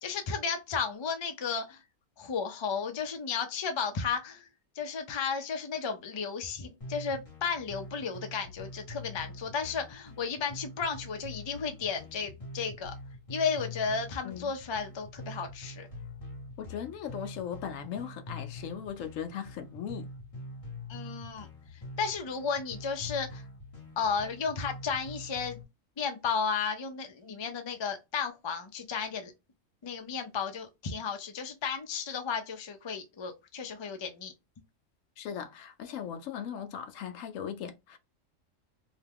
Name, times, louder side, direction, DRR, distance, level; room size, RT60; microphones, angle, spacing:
voice 1, 0.0-1.8 2.2-4.5 4.8-12.9 13.3-15.9 20.9-21.5 22.0-23.4 24.0-25.6 26.0-29.3 29.8-34.3, left 6 dB, 45° left, 0.3 m, -33 dB
sound 1, 6.8-25.6, left 1 dB, 30° left, 1.0 m, -45 dB
voice 2, 16.6-20.1 35.2-38.0, left 8 dB, 75° left, 1.0 m, -38 dB
2.8 x 2.2 x 3.4 m
omnidirectional pair, 1.4 m